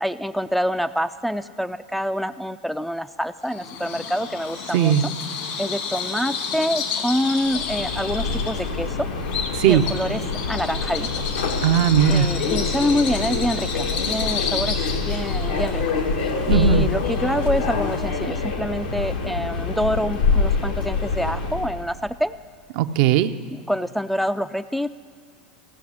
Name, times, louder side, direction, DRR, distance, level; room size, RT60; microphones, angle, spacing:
voice 1, 0.0-5.1 5.6-9.1 9.6-11.1 12.1-14.8 15.1-16.0 16.2-22.4 23.5-24.9, equal, ahead, 9 dB, 0.3 m, -26 dB
Bird vocalization bird call bird song, 3.5-18.3, left 5 dB, 65° left, 1.8 m, -31 dB
voice 2, 4.7-5.0 9.6-9.8 11.6-12.3 16.5-16.9 22.8-23.3, right 10 dB, 60° right, 9 dB, 0.5 m, -18 dB
Subway metro underground, 7.4-21.8, left 4 dB, 85° left, 1.3 m, -25 dB
15.5 x 5.9 x 8.5 m, 2.1 s
hypercardioid pair, 95°, 4 cm